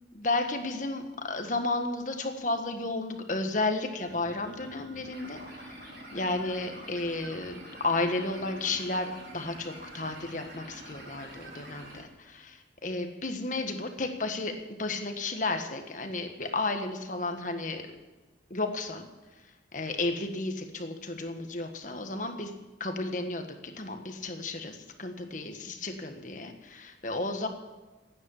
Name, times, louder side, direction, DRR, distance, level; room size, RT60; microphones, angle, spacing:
voice 1, 0.1-17.8 18.5-19.0 19.7-22.5 22.8-27.5, left 2 dB, 45° left, 5 dB, 1.6 m, -33 dB
sound 1, 4.0-12.0, right 1 dB, 55° right, 4.6 m, -46 dB
16.0 x 9.7 x 8.4 m, 1.2 s
head